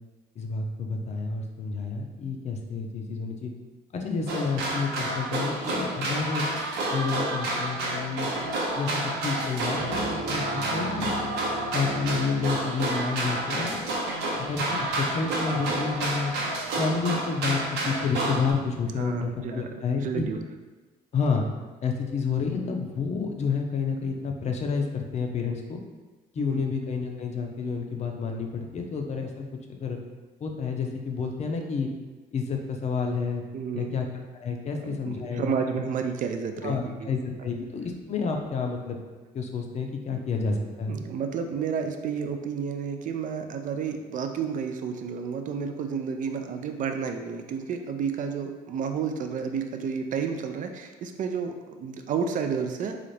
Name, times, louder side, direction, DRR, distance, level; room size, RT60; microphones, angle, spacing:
voice 1, 0.4-3.5 3.9-6.5 6.9-8.3 8.7-11.1 11.7-13.8 14.4-16.3 16.8-20.3 21.1-21.4 21.8-25.8 26.3-29.4 29.7-30.0 30.4-31.9 32.3-33.4 33.7-34.1 34.3-35.8 36.6-39.0 39.3-41.0, left 5 dB, 40° left, 3 dB, 0.5 m, -29 dB
sound 1, 4.3-18.5, right 2 dB, 85° right, 0.8 m, -29 dB
sound 2, 9.8-13.3, right 1 dB, 85° left, 1.0 m, -37 dB
voice 2, 19.0-19.7 20.0-20.4 26.4-26.6 33.5-34.0 34.9-37.1 40.1-40.2 40.9-53.0, right 6 dB, 50° right, 5 dB, 0.4 m, -31 dB
4.0 x 2.5 x 3.2 m, 1.3 s
cardioid pair, 110°, 17 cm